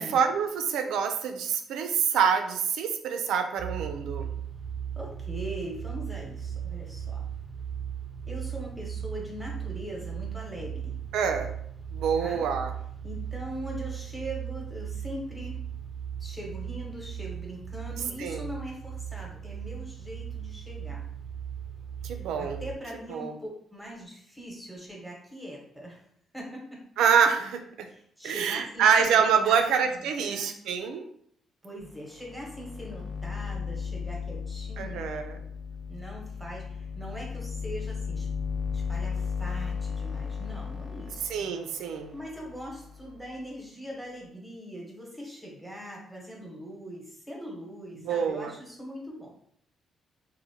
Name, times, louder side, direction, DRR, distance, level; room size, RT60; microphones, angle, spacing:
voice 1, 0.0-4.3 11.1-11.5 11.9-12.7 18.2-18.5 22.0-22.6 23.1-23.3 27.0-27.9 28.2-31.1 34.8-35.4 41.3-42.1 48.0-48.6, right 7 dB, 85° right, 6 dB, 0.3 m, -26 dB
sound 1, 3.6-22.8, right 8 dB, 20° right, 0.4 m, -37 dB
voice 2, 4.9-7.2 8.3-11.0 12.2-12.5 13.0-15.6 16.2-21.0 22.2-26.0 26.3-26.8 27.9-30.5 31.6-35.2 35.9-38.3 38.7-41.2 42.1-49.3, equal, ahead, -2 dB, 0.9 m, -41 dB
sound 2, 31.8-31.9 32.2-43.3, left 6 dB, 35° left, 0.6 m, -35 dB
2.8 x 2.1 x 2.7 m, 0.65 s
cardioid pair, 90°, 0 cm